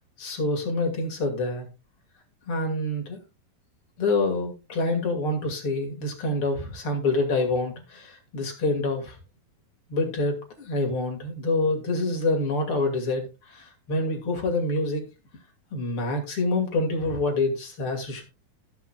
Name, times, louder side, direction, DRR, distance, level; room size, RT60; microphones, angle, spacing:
voice 1, 0.2-1.7 2.5-3.2 4.0-9.2 9.9-15.0 15.7-18.2, left 2 dB, 45° left, 3 dB, 2.7 m, -26 dB
18.5 x 6.3 x 2.4 m, 0.27 s
omnidirectional pair, 4.0 m